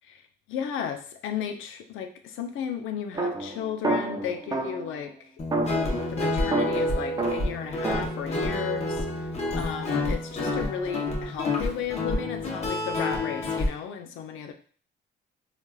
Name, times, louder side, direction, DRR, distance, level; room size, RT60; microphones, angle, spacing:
voice 1, 0.5-5.3 6.1-8.9 9.5-14.5, left 8 dB, 85° left, 6 dB, 0.5 m, -34 dB
sound 1, 3.1-5.0 5.5-8.1, right 2 dB, 20° right, 0.4 m, -29 dB
Guitar, 5.4-13.7, left 2 dB, 35° left, 0.8 m, -28 dB
3.2 x 2.4 x 2.2 m, 0.43 s
cardioid pair, 90°, 20 cm